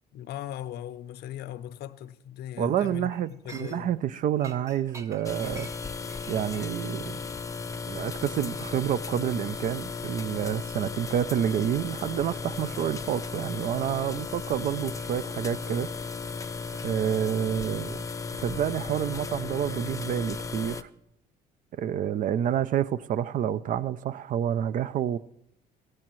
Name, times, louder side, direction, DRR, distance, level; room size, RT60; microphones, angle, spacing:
voice 1, 0.1-3.9, left 11 dB, 75° left, 0.6 m, -39 dB
voice 2, 2.6-5.7 6.3-7.2 7.9-15.9 16.8-18.0 18.4-20.9 21.7-25.2, right 10 dB, 50° right, 0.4 m, -28 dB
Chink clink, 2.8-4.1 4.4-9.0 9.3-9.5, right 3 dB, 15° right, 0.7 m, -50 dB
sound 1, 5.2-20.8, left 4 dB, 20° left, 0.5 m, -35 dB
16.0 x 14.0 x 3.1 m
cardioid pair, 110°, 17 cm